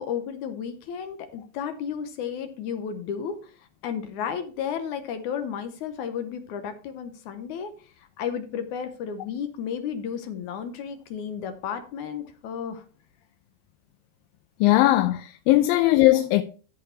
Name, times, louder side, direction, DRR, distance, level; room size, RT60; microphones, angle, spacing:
voice 1, 0.0-7.7 8.0-12.8 15.7-15.8, left 7 dB, 70° left, 2.0 m, -33 dB
voice 2, 14.6-16.4, left 16 dB, 85° left, 2.3 m, -19 dB
13.5 x 4.7 x 4.4 m
omnidirectional pair, 4.0 m